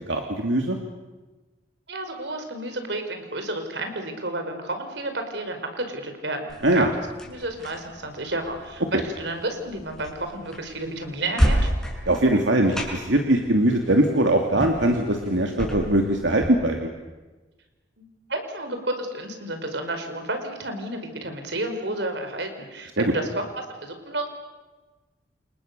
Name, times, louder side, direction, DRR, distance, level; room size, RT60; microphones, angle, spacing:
voice 1, 0.1-0.8 6.6-6.9 8.9-9.0 12.1-16.9 23.0-23.1, right 1 dB, 90° right, 3 dB, 2.7 m, -21 dB
voice 2, 1.9-6.9 7.2-11.7 18.0-24.3, right 2 dB, 70° right, 6 dB, 5.1 m, -31 dB
sound 1, 6.5-16.5, equal, 5° left, 6.7 m, -31 dB
29.5 x 28.5 x 6.9 m, 1.2 s
head